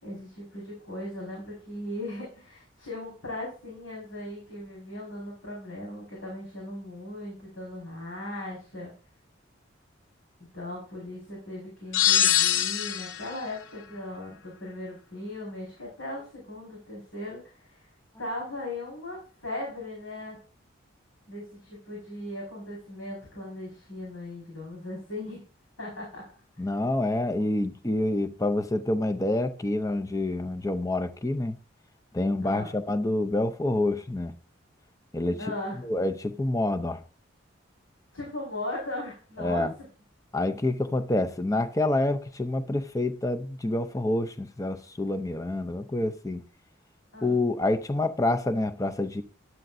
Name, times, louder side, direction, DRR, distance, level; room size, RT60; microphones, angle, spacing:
voice 1, 0.0-8.9 10.5-17.9 18.2-20.4 21.3-25.4 25.8-26.2 32.4-32.7 35.4-35.8 38.1-39.7 47.1-47.4, left 1 dB, 90° left, 5.1 m, -38 dB
sound 1, 11.9-13.3, left 10 dB, 65° left, 0.8 m, -23 dB
voice 2, 26.6-31.6 32.1-34.3 35.1-35.4 35.8-37.0 39.4-39.7 40.3-46.4 47.2-49.2, left 2 dB, 15° left, 0.6 m, -27 dB
12.0 x 11.0 x 2.6 m
head